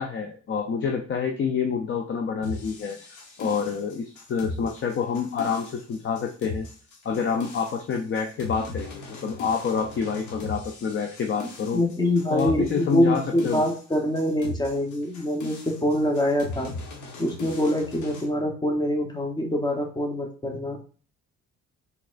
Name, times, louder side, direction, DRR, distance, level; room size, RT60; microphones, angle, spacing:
voice 1, 0.0-3.0 3.4-6.7 7.0-11.8 12.3-13.6, left 6 dB, 40° left, 3 dB, 0.5 m, -27 dB
sound 1, 2.4-18.3, left 2 dB, 75° left, 1.2 m, -39 dB
voice 2, 11.7-16.7 17.2-20.8, left 1 dB, 15° left, 2 dB, 0.9 m, -25 dB
4.1 x 3.6 x 2.5 m, 0.41 s
cardioid pair, 90°, 30 cm